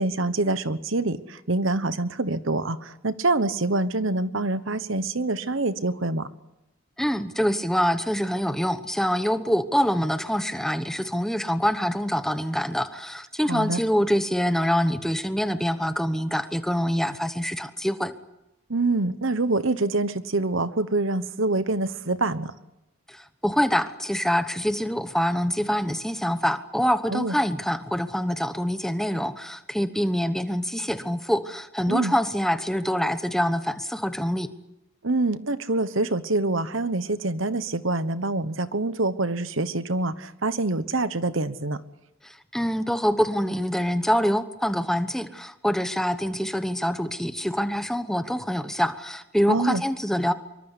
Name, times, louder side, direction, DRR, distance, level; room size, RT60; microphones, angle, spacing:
voice 1, 0.0-6.3 13.5-13.8 18.7-22.5 27.1-27.3 31.9-32.1 35.0-41.8 49.5-49.8, right 2 dB, 65° right, 13 dB, 1.2 m, -25 dB
voice 2, 7.0-18.1 23.1-34.5 42.2-50.3, equal, ahead, 10 dB, 1.0 m, -25 dB
25.5 x 23.5 x 8.2 m, 0.92 s
head